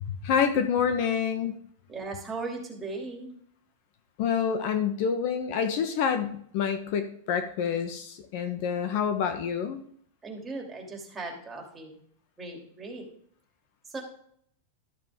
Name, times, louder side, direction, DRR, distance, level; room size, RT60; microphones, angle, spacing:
voice 1, 0.2-1.6 4.2-9.8, left 7 dB, 55° left, 8 dB, 1.1 m, -27 dB
voice 2, 1.0-1.5 1.9-3.3 5.5-5.6 10.2-12.0 12.4-13.1 13.8-14.0, right 3 dB, 15° right, 0 dB, 2.8 m, -38 dB
12.5 x 7.5 x 3.7 m, 0.63 s
supercardioid pair, 145°, 0 cm